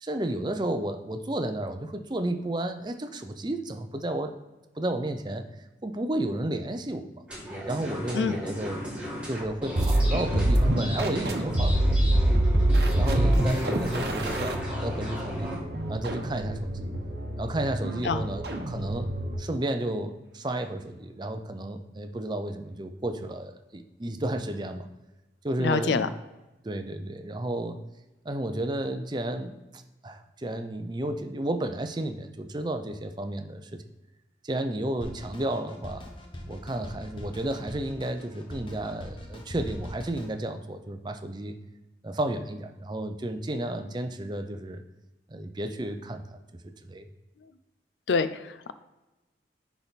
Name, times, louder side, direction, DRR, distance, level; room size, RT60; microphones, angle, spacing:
voice 1, 0.0-4.3 4.8-5.5 5.8-7.2 7.7-8.8 9.2-12.3 13.0-15.6 15.9-16.9 17.4-19.1 19.4-24.9 25.4-26.1 26.6-27.8 28.2-33.8 34.4-36.1 36.5-41.6 42.0-44.8 45.3-46.4 46.6-47.1, right 1 dB, 25° right, 7 dB, 0.5 m, -32 dB
sound 1, 7.3-15.6, equal, 5° right, 2.1 m, -36 dB
sound 2, 9.8-19.5, right 1 dB, 65° right, 0.9 m, -26 dB
voice 2, 25.6-26.1 48.1-48.7, left 5 dB, 80° left, 12 dB, 0.4 m, -26 dB
Drum kit, 35.0-40.3, left 1 dB, 25° left, 0.9 m, -41 dB
10.0 x 3.5 x 4.1 m, 1.1 s
head